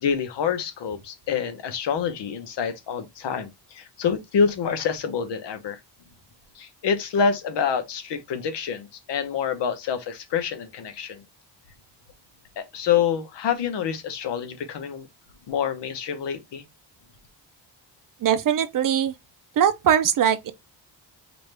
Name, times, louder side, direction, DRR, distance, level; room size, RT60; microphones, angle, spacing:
voice 1, 0.0-5.8 6.5-11.2 12.6-15.1 15.5-16.6, left 7 dB, 70° left, 1.0 m, -27 dB
voice 2, 18.2-19.1 19.6-20.5, right 9 dB, 50° right, 0.5 m, -21 dB
5.0 x 2.6 x 3.2 m
wide cardioid pair, 165°, 44 cm